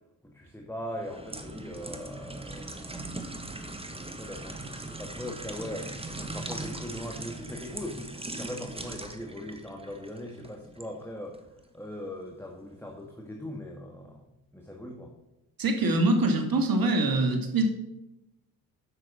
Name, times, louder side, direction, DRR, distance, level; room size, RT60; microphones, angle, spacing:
voice 1, 0.2-3.3 3.9-11.4 11.7-14.3 14.5-15.1, left 1 dB, 5° left, 0 dB, 1.6 m, -40 dB
sound 1, 0.9-10.9 11.3-11.5, right 2 dB, 15° right, 1.4 m, -40 dB
voice 2, 15.6-17.6, right 2 dB, 55° right, 5 dB, 2.2 m, -24 dB
8.3 x 5.9 x 6.0 m, 0.92 s
supercardioid pair, 55°, 43 cm